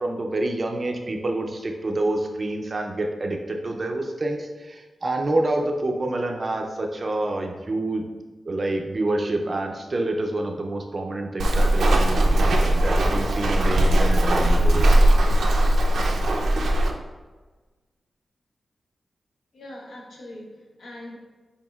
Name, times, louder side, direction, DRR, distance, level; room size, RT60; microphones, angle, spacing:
voice 1, 0.0-8.0 8.5-15.1, right 2 dB, 35° right, 2 dB, 0.4 m, -27 dB
Walk footsteps, 11.4-16.9, right 1 dB, 85° right, 0.5 m, -19 dB
voice 2, 15.6-16.0 19.5-21.2, left 1 dB, 85° left, -3 dB, 1.1 m, -42 dB
6.0 x 3.6 x 2.3 m, 1.3 s
wide cardioid pair, 180°, 0 cm